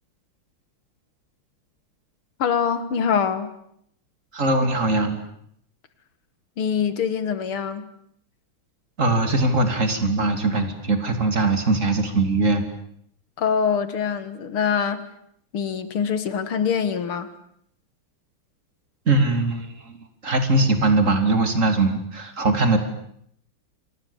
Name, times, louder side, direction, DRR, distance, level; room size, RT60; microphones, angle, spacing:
voice 1, 2.4-3.5 6.6-7.9 13.4-15.0 15.5-17.3, left 7 dB, 75° left, 12 dB, 2.6 m, -24 dB
voice 2, 4.3-5.2 9.0-12.6 19.1-19.9 20.2-22.8, right 2 dB, 35° right, 7 dB, 3.3 m, -21 dB
29.0 x 25.5 x 7.2 m, 0.68 s
omnidirectional pair, 2.4 m